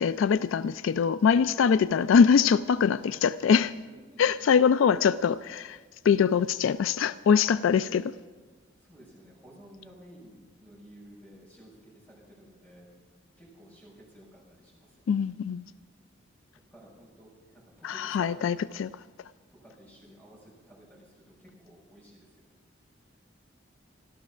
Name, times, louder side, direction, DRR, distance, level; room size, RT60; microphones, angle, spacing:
voice 1, 0.0-3.7 4.2-5.8 6.0-8.1 15.1-15.7 17.8-18.9, left 6 dB, 85° left, 15 dB, 0.3 m, -23 dB
voice 2, 3.8-4.6 8.8-12.9 13.4-15.1 16.7-18.6 19.5-22.5, right 1 dB, 10° left, -6 dB, 5.6 m, -53 dB
14.0 x 12.5 x 6.0 m, 1.4 s
head